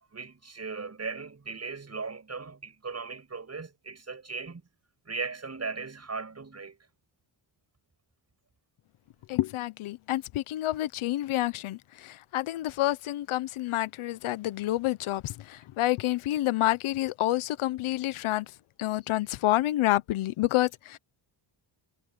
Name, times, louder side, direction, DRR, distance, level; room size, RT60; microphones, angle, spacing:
voice 1, 0.1-4.6 5.0-6.8, right 4 dB, 30° right, 7.8 m, -38 dB
voice 2, 9.3-18.5 18.8-21.0, left 15 dB, 85° left, 0.9 m, -28 dB
cardioid pair, 95°, 48 cm